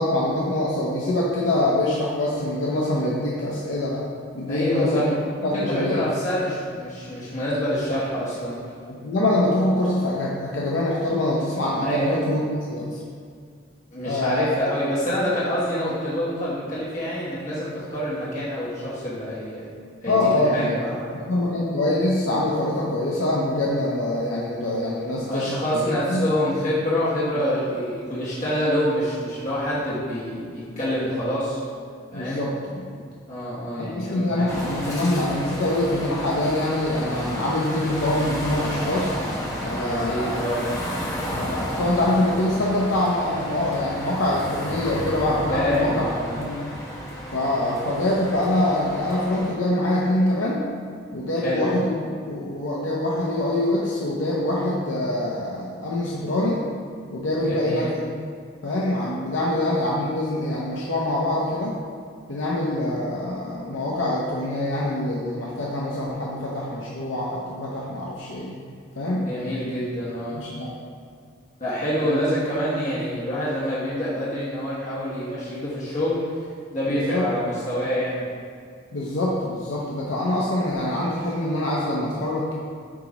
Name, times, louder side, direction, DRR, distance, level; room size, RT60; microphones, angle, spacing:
voice 1, 0.0-4.1 4.3-5.0 5.4-6.1 8.9-12.4 12.7-13.0 14.0-14.6 20.1-20.8 21.3-26.3 32.1-33.0 33.8-39.1 39.6-40.4 41.3-46.1 46.3-46.6 47.3-50.6 51.1-52.0 52.3-56.6 57.1-58.0 58.6-61.8 62.3-68.5 69.0-69.3 70.3-70.7 72.0-72.1 76.9-77.2 78.9-82.5, left 1 dB, 80° left, -5 dB, 0.8 m, -24 dB
voice 2, 4.5-5.1 5.4-8.6 11.8-12.1 13.9-19.7 20.0-20.2 20.5-21.1 25.3-31.6 32.1-32.4 33.3-34.5 39.8-40.7 45.5-46.4 51.4-51.6 57.5-57.8 69.1-70.4 71.6-76.2 76.7-78.3, equal, 40° left, -10 dB, 1.4 m, -26 dB
sound 1, 34.5-49.5, equal, 15° left, 0.8 m, -32 dB
7.4 x 3.0 x 5.0 m, 2.1 s
head